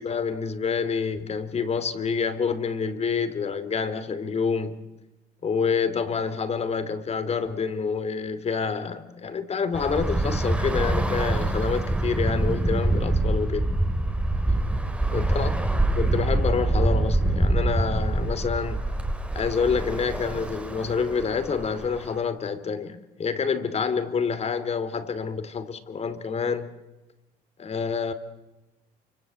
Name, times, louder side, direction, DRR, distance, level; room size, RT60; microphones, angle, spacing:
voice 1, 0.0-4.8 5.4-13.7 15.1-18.9 19.3-26.7 27.6-28.1, left 5 dB, 40° left, 2.9 m, -27 dB
Bus / Traffic noise roadway noise, 9.7-22.2, right 1 dB, 5° right, 3.1 m, -25 dB
28.0 x 26.0 x 7.8 m
cardioid pair, 110°, 17 cm